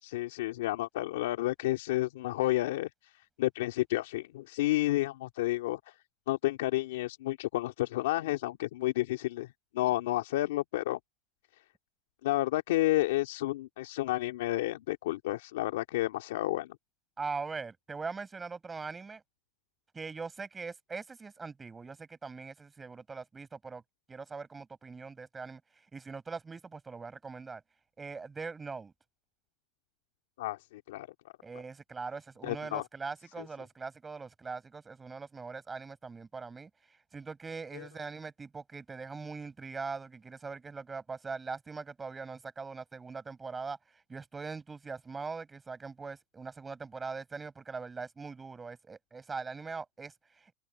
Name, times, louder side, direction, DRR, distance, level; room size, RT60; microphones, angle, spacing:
voice 1, 0.0-3.1 3.4-5.8 6.3-9.5 9.7-11.0 12.2-16.8 30.4-31.1 32.4-32.8 33.4-33.5 37.7-37.9, left 16 dB, 85° left, 2.3 m, -31 dB
voice 2, 17.2-19.2 19.9-23.8 24.1-25.6 25.9-27.6 28.0-28.9 31.4-36.7 37.1-43.8 44.1-50.5, right 4 dB, 15° right, 7.1 m, -41 dB
supercardioid pair, 155°, 0 cm